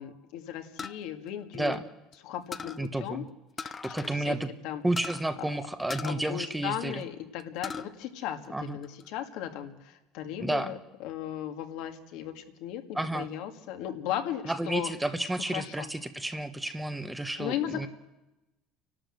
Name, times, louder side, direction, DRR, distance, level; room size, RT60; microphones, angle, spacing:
voice 1, 0.0-1.8 2.2-3.2 3.6-4.4 4.6-4.8 5.4-5.5 6.0-14.9 15.5-15.9 17.4-17.9, left 11 dB, 70° left, 5 dB, 2.1 m, -36 dB
sound 1, 0.8-2.1 2.5-2.9 3.6-4.2 4.5-4.6 5.0-5.2 5.9-7.0 7.4-7.9 8.3-9.1, left 5 dB, 20° left, 0.6 m, -40 dB
voice 2, 2.8-3.3 3.8-4.5 4.8-7.0 8.5-8.8 10.4-10.7 12.9-13.3 14.4-17.9, right 1 dB, 5° right, 9 dB, 1.0 m, -31 dB
29.5 x 12.5 x 7.7 m, 0.98 s
cardioid pair, 140°, 0 cm